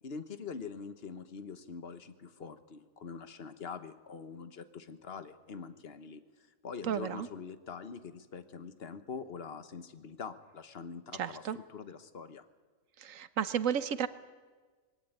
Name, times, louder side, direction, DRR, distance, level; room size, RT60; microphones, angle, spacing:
voice 1, 0.0-6.2 6.6-12.4, left 5 dB, 50° left, 11 dB, 1.4 m, -44 dB
voice 2, 6.8-7.3 11.1-11.6 13.0-14.1, right 8 dB, 80° right, 14 dB, 1.3 m, -33 dB
20.5 x 17.0 x 9.8 m, 1.4 s
omnidirectional pair, 1.3 m